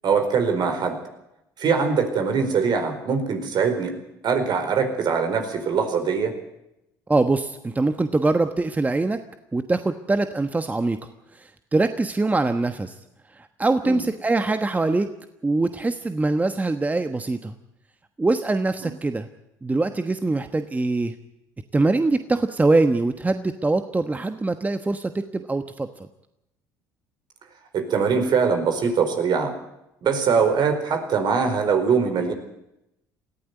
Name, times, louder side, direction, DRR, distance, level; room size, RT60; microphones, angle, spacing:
voice 1, 0.0-1.0 1.6-3.9 4.2-6.3 13.8-14.0 27.7-29.5 30.0-32.3, right 5 dB, 55° right, 6 dB, 4.7 m, -22 dB
voice 2, 7.1-9.2 9.5-11.0 11.3-13.0 13.3-15.1 15.4-17.5 18.2-19.3 19.6-21.1 21.7-25.9, right 2 dB, 20° right, 9 dB, 1.2 m, -23 dB
19.0 x 15.0 x 9.4 m, 0.86 s
supercardioid pair, 75°, 9 cm